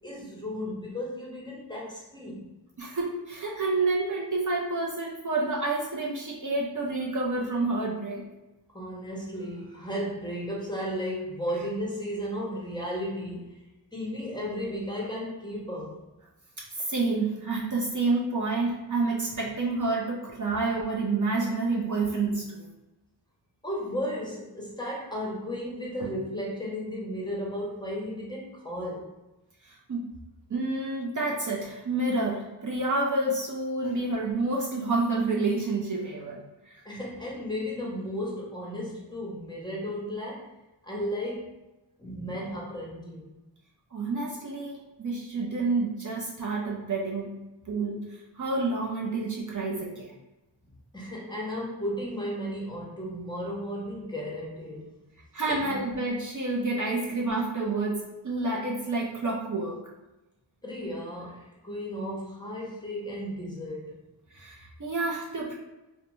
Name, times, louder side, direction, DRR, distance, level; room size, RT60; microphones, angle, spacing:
voice 1, 0.0-2.5 8.7-13.5 13.9-16.0 23.6-29.1 36.8-40.5 40.8-41.6 42.0-43.3 50.9-54.9 55.5-55.8 60.6-64.0, equal, 10° left, -4 dB, 0.7 m, -34 dB
voice 2, 2.8-8.2 16.8-22.6 26.0-26.1 29.6-30.0 30.5-36.4 43.9-47.3 47.7-48.0 48.4-50.1 55.3-59.8 64.3-65.5, right 3 dB, 45° right, -3 dB, 0.5 m, -29 dB
2.4 x 2.2 x 3.0 m, 1.0 s
wide cardioid pair, 65°, 44 cm